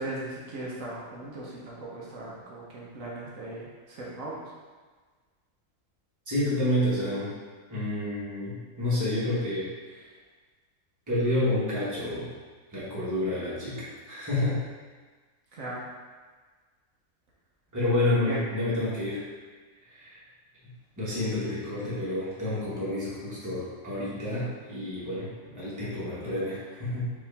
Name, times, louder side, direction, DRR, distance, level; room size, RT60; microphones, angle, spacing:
voice 1, 0.0-4.4 15.5-15.8 18.3-18.4, right 2 dB, 70° right, -5 dB, 1.2 m, -38 dB
voice 2, 6.3-7.3 7.7-10.0 11.1-12.3 12.7-14.6 17.7-19.2 19.9-20.2 21.0-27.1, left 1 dB, 15° right, -9 dB, 1.2 m, -29 dB
5.0 x 3.0 x 3.4 m, 1.4 s
omnidirectional pair, 1.5 m